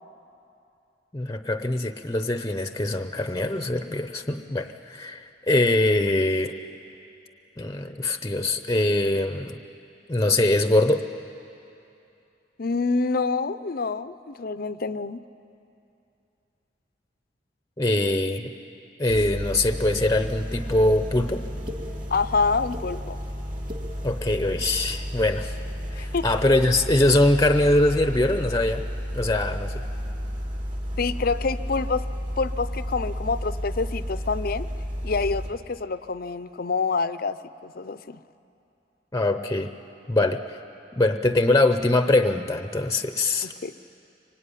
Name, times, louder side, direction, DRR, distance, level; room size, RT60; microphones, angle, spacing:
voice 1, 1.1-6.5 7.6-9.6 10.1-11.1 17.8-18.5 19.0-21.4 24.0-25.5 25.9-28.8 29.1-29.8 39.1-39.7 40.1-40.6 41.0-43.5, left 2 dB, 20° left, 8 dB, 0.8 m, -23 dB
voice 2, 12.6-15.2 22.1-23.2 26.0-26.2 31.0-32.1 32.4-34.7 35.0-37.4 37.6-38.2 43.6-43.7, left 4 dB, 55° left, 14 dB, 0.7 m, -27 dB
sound 1, 19.1-35.5, equal, 45° right, 3.0 m, -32 dB
sound 2, 19.7-19.8 20.7-20.8 21.5-21.8 22.5-22.9 23.5-23.8 24.5-24.7, left 1 dB, 25° right, 2.0 m, -38 dB
25.0 x 23.5 x 10.0 m, 2.7 s
head